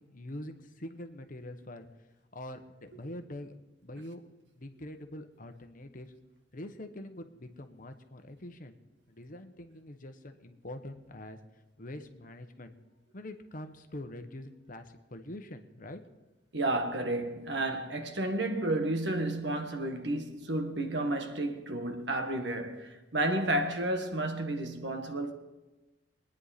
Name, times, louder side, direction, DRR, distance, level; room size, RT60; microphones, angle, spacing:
voice 1, 0.0-1.9 2.3-3.5 3.8-4.2 4.5-6.1 6.5-8.7 9.1-11.4 11.8-12.7 13.1-16.0, left 1 dB, 50° left, 1.2 m, -44 dB
voice 2, 16.5-25.3, right 1 dB, 75° right, 1.5 m, -31 dB
23.0 x 9.9 x 4.2 m
head